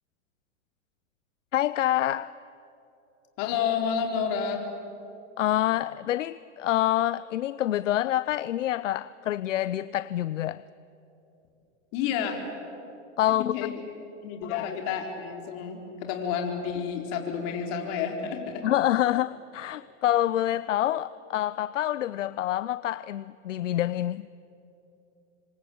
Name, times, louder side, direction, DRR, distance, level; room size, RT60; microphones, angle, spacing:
voice 1, 1.5-2.3 5.4-10.6 13.2-13.5 14.4-14.7 18.6-24.3, left 13 dB, 85° left, 17 dB, 0.7 m, -27 dB
voice 2, 3.4-4.6 11.9-12.4 13.4-13.7 14.2-18.7, left 7 dB, 50° left, 3 dB, 4.3 m, -30 dB
27.0 x 24.5 x 8.7 m, 2.9 s
hypercardioid pair, 120°, 37 cm